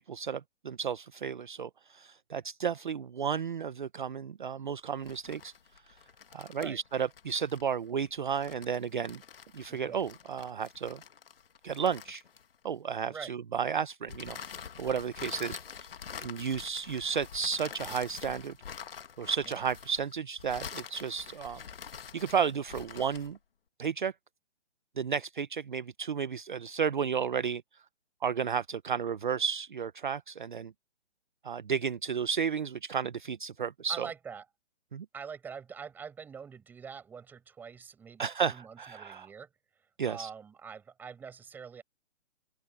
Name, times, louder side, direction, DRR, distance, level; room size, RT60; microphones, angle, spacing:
voice 1, 0.1-5.5 5.9-6.0 6.3-9.2 9.5-11.0 11.6-12.2 12.6-15.9 16.2-18.6 19.2-21.6 22.1-23.4 23.8-24.1 25.0-27.8 28.2-30.7 31.4-34.1 34.9-35.1 38.2-39.3 40.0-40.3, right 7 dB, 45° right, 0.7 m, -33 dB
paperbag crumbling, 4.9-12.8 14.1-23.4, left 7 dB, 55° left, 1.7 m, -46 dB
voice 2, 33.9-34.4 35.1-39.5 40.1-41.8, right 6 dB, 5° right, 5.5 m, -44 dB
open air
hypercardioid pair, 175°, 35 cm